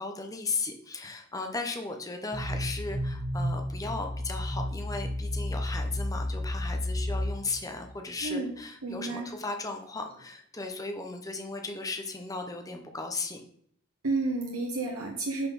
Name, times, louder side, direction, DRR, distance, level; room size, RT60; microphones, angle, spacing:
voice 1, 0.0-13.4, left 3 dB, 15° left, 4 dB, 0.6 m, -36 dB
sound 1, 2.3-7.9, left 1 dB, ahead, 1.0 m, -32 dB
voice 2, 8.8-9.3 14.0-15.5, right 3 dB, 85° right, -2 dB, 1.1 m, -31 dB
5.7 x 4.1 x 5.3 m, 0.66 s
head